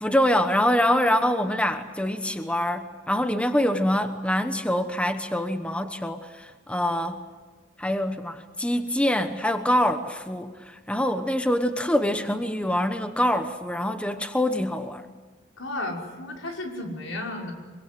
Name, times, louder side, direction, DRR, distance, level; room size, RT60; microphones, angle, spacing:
voice 1, 0.0-7.2 7.8-15.0, left 1 dB, 5° left, 8 dB, 1.1 m, -25 dB
voice 2, 15.6-17.5, left 2 dB, 85° left, 0 dB, 5.8 m, -33 dB
25.0 x 24.0 x 7.9 m, 1.4 s
head